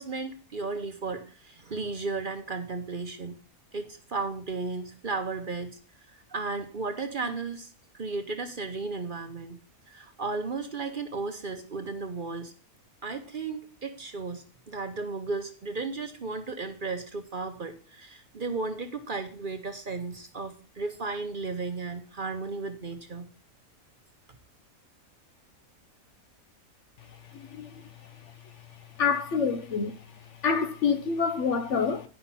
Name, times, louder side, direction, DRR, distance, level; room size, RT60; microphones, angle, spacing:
voice 1, 0.0-3.4 3.7-5.8 6.1-7.7 8.0-9.6 9.9-12.5 13.0-23.3, right 3 dB, 40° right, 0.9 m, -34 dB
voice 2, 27.3-27.8 29.0-30.0 30.4-32.1, left 5 dB, 60° left, 1.0 m, -27 dB
9.9 x 5.8 x 5.6 m
omnidirectional pair, 1.5 m